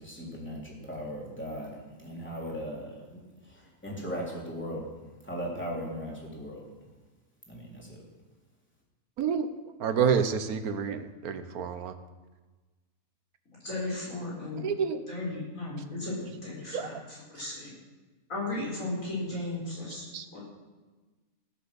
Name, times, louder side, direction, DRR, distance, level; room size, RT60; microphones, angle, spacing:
voice 1, 0.0-6.6 7.5-8.0, equal, 5° left, -4 dB, 3.6 m, -38 dB
voice 2, 9.2-9.5 9.8-11.9 14.6-15.0 16.7-16.9 20.1-20.2, right 6 dB, 85° right, 10 dB, 1.5 m, -28 dB
voice 3, 13.6-14.6 15.1-17.7 18.3-20.4, left 2 dB, 65° left, -6 dB, 5.1 m, -35 dB
16.5 x 8.0 x 7.1 m, 1.2 s
omnidirectional pair, 1.5 m